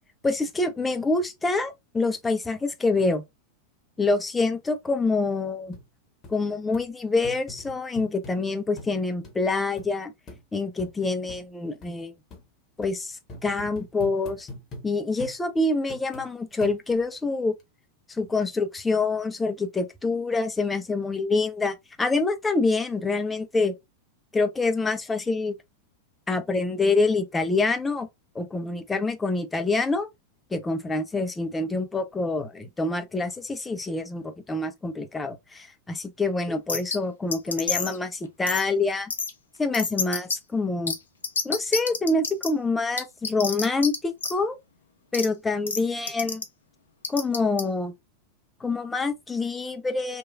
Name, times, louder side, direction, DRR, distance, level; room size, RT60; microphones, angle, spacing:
voice 1, 0.2-3.2 4.0-5.8 6.3-10.1 10.5-12.1 12.8-13.2 13.4-14.5 14.8-17.5 18.2-23.7 24.3-25.6 26.3-28.1 28.4-30.1 30.5-39.1 39.6-40.9 41.4-44.6 45.1-46.4 47.1-47.9 48.6-50.2, left 3 dB, 10° left, 0.5 m, -26 dB
sound 1, 5.7-5.8 6.2-6.3 6.7-6.9 7.2-8.4 8.8-8.9 9.2-9.3 9.8-9.9 10.3-10.4 10.8-10.9 11.3-11.4 11.8-11.9 12.3-12.4 12.8-12.9 13.3-14.9 15.2-15.4 15.9-16.3 16.6-17.1 17.6-17.7, left 1 dB, 30° left, 0.9 m, -42 dB
sound 2, 36.7-37.0 37.3-38.0 38.5-38.6 39.1-39.3 39.7-40.4 40.9-41.0 41.2-42.5 43.0-44.0 44.2-44.3 45.1-45.3 45.7-45.8 46.1-46.4 47.0-47.6, left 5 dB, 70° left, 0.5 m, -27 dB
3.0 x 2.2 x 2.4 m
figure-of-eight pair, 90°, 0 cm